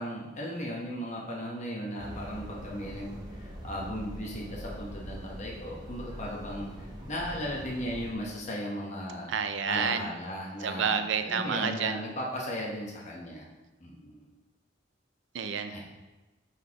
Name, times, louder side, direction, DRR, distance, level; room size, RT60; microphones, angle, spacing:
voice 1, 0.0-9.3 9.6-13.5 13.8-14.3 15.7-15.8, equal, 35° left, -3 dB, 1.0 m, -36 dB
sound 1, 2.0-8.1, equal, 20° right, 0.8 m, -43 dB
voice 2, 9.3-10.1 10.6-12.0 15.3-15.7, right 6 dB, 65° right, 9 dB, 0.5 m, -29 dB
7.9 x 4.2 x 2.9 m, 1.1 s
head